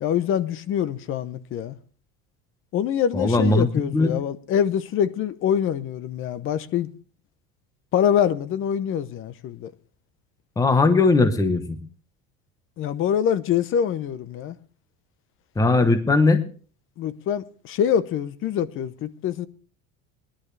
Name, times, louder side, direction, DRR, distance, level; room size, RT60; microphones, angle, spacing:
voice 1, 0.0-1.7 2.7-6.9 7.9-9.7 12.8-14.5 15.8-15.9 17.0-19.5, left 9 dB, 40° left, 0.8 m, -25 dB
voice 2, 3.1-3.7 3.9-4.1 10.6-11.8 15.6-16.4, left 3 dB, 10° left, 1.0 m, -19 dB
20.0 x 11.5 x 3.3 m
cardioid pair, 150°, 33 cm